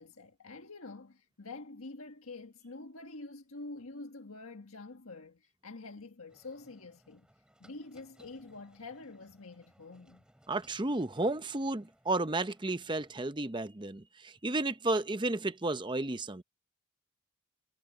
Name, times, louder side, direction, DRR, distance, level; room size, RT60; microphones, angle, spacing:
voice 1, 0.0-7.3 7.6-10.2, left 3 dB, 75° left, 1.6 m, -47 dB
sound 1, 6.3-13.3, equal, 5° right, 4.9 m, -65 dB
voice 2, 10.5-16.4, right 2 dB, 20° right, 0.7 m, -32 dB
head